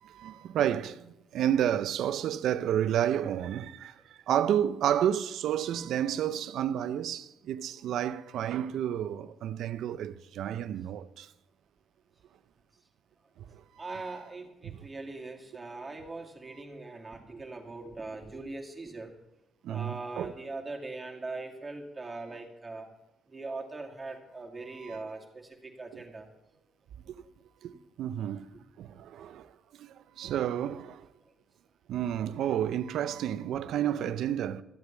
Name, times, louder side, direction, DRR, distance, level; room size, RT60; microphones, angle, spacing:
voice 1, 0.0-3.9 4.3-11.3 13.5-13.6 14.6-14.9 19.6-20.3 24.7-25.1 25.9-26.0 27.1-27.2 27.6-28.5 28.8-29.5 29.8-31.1 31.9-34.6, right 10 dB, 75° right, 0.6 m, -31 dB
voice 2, 13.8-19.1 19.7-22.9 23.3-26.3, right 3 dB, 25° right, 2.4 m, -41 dB
13.5 x 8.2 x 7.0 m
cardioid pair, 90°, 0 cm